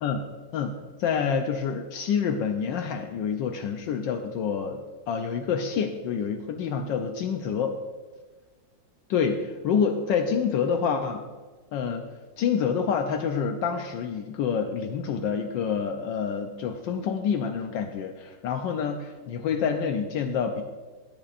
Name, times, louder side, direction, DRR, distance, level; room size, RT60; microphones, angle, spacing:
voice 1, 0.5-4.8 5.1-7.7 9.1-11.2 11.7-12.1 12.4-20.6, left 6 dB, 75° left, 4 dB, 1.3 m, -27 dB
20.0 x 7.0 x 2.5 m, 1.4 s
omnidirectional pair, 2.0 m